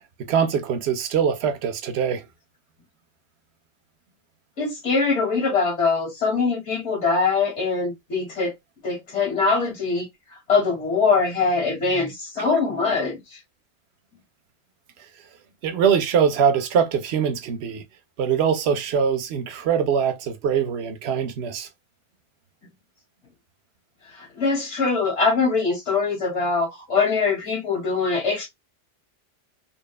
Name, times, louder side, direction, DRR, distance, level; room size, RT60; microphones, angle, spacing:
voice 1, 0.3-2.3 15.6-17.8 18.2-21.7, right 7 dB, 70° right, 0.8 m, -22 dB
voice 2, 4.6-8.5 8.8-10.1 10.5-13.4 24.1-28.5, left 4 dB, 70° left, 1.5 m, -23 dB
2.9 x 2.2 x 2.3 m
omnidirectional pair, 1.2 m